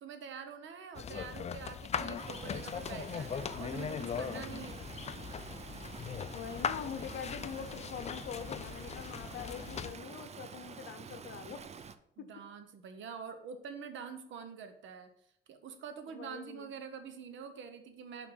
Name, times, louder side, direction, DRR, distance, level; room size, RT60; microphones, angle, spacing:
voice 1, 0.0-4.8 12.2-15.1 15.5-18.3, right 6 dB, 70° right, 8 dB, 0.9 m, -46 dB
sound 1, 0.9-9.9, left 7 dB, 35° left, 0.4 m, -39 dB
Stream, 2.2-11.9, right 6 dB, 35° right, 0.5 m, -48 dB
voice 2, 6.3-11.6 12.2-12.3 16.1-16.7, left 8 dB, 65° left, 10 dB, 0.7 m, -44 dB
5.8 x 3.6 x 5.8 m, 0.72 s
cardioid pair, 90°, 20 cm